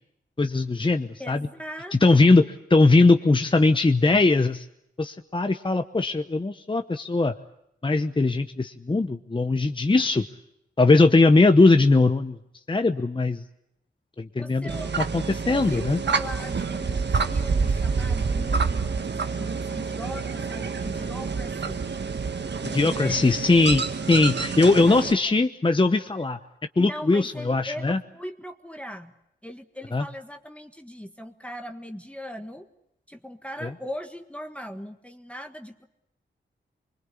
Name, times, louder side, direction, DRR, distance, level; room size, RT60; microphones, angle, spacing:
voice 1, 0.4-1.5 2.0-2.4 2.7-4.6 5.0-7.3 7.8-10.2 10.8-12.4 12.7-13.4 14.2-14.7 15.1-16.0 22.7-26.4 26.8-28.0 29.9-30.0 33.6-33.7, left 3 dB, 25° left, 8 dB, 1.0 m, -20 dB
voice 2, 1.2-2.5 14.4-15.0 15.2-21.9 22.6-23.3 24.9-25.1 26.8-29.1 29.4-32.7 33.1-35.9, equal, 5° left, 6 dB, 1.6 m, -39 dB
sound 1, 14.7-25.1, right 5 dB, 65° right, 1.6 m, -28 dB
25.0 x 23.0 x 8.5 m, 0.79 s
wide cardioid pair, 90°, 20 cm